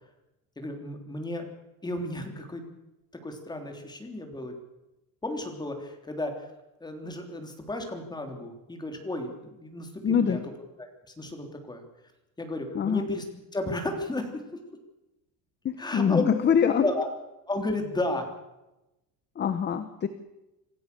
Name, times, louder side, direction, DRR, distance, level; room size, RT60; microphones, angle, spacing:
voice 1, 0.6-1.5 1.8-2.6 3.2-4.6 5.2-6.5 6.8-10.4 10.8-10.9 11.2-11.8 12.4-13.2 13.5-14.4 15.8-16.3 16.8-17.1 17.5-18.3, left 2 dB, 10° left, 4 dB, 3.5 m, -33 dB
voice 2, 10.0-10.5 12.7-13.1 15.6-16.9 19.3-20.1, left 7 dB, 25° left, 10 dB, 1.1 m, -24 dB
27.0 x 16.0 x 7.0 m, 0.97 s
cardioid pair, 160°, 38 cm